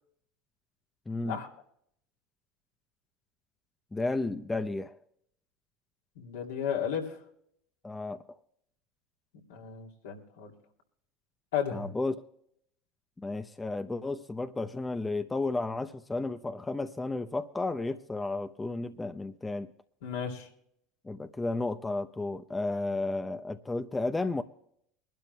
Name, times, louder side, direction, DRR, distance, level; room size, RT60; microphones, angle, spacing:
voice 1, 1.1-1.4 3.9-5.0 7.8-8.2 11.7-12.1 13.2-19.7 21.0-24.4, left 2 dB, 15° left, 9 dB, 0.7 m, -33 dB
voice 2, 6.2-7.1 9.5-10.5 11.5-11.9 20.0-20.5, left 8 dB, 75° left, 0 dB, 2.7 m, -34 dB
24.0 x 12.0 x 2.3 m, 0.69 s
hypercardioid pair, 75°, 0 cm